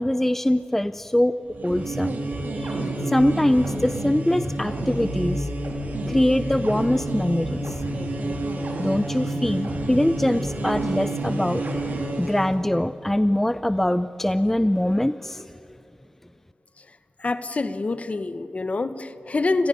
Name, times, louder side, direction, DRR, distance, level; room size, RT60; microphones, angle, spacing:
voice 1, 0.0-1.3 1.6-2.2 2.5-2.8 3.1-5.5 6.1-7.7 8.8-11.6 12.2-15.5, left 1 dB, 10° left, 13 dB, 0.5 m, -23 dB
sound 1, 1.5-12.5, right 1 dB, 65° right, 3.3 m, -29 dB
voice 2, 17.2-19.7, left 3 dB, 40° left, 12 dB, 1.1 m, -26 dB
29.5 x 16.5 x 5.4 m, 2.8 s
cardioid pair, 65°, 3 cm